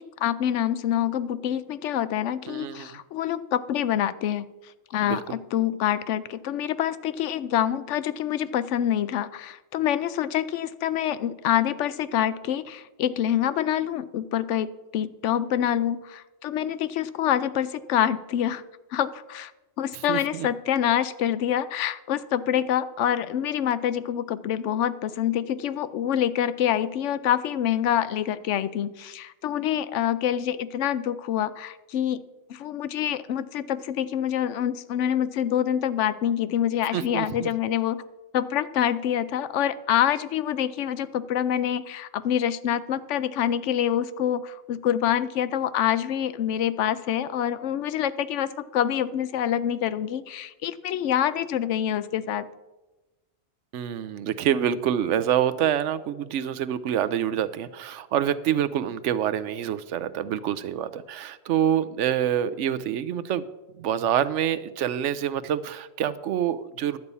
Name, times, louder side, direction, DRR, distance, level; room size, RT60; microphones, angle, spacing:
voice 1, 0.0-4.5 4.9-18.6 18.9-19.5 19.8-32.2 32.5-38.0 38.3-52.5, left 10 dB, 90° left, 15 dB, 0.9 m, -26 dB
voice 2, 2.5-3.0 5.0-5.2 20.1-20.5 36.9-37.5 53.7-63.4 63.8-67.0, right 10 dB, 85° right, 13 dB, 0.9 m, -26 dB
11.0 x 8.3 x 5.5 m, 1.1 s
omnidirectional pair, 1.2 m